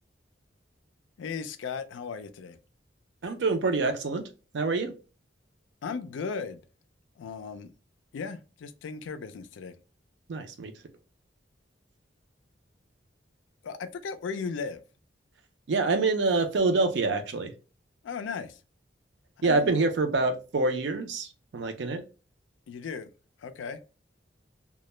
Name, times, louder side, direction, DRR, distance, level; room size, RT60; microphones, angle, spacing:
voice 1, 1.2-2.6 5.8-6.6 7.2-7.7 8.1-9.7 13.6-14.8 18.0-18.6 19.4-19.8 22.7-23.1 23.4-23.8, left 5 dB, 85° left, 0.3 m, -36 dB
voice 2, 3.2-4.2 4.5-4.9 10.3-10.7 15.7-17.5 19.4-22.0, right 3 dB, 70° right, 0.4 m, -26 dB
2.1 x 2.0 x 3.0 m
head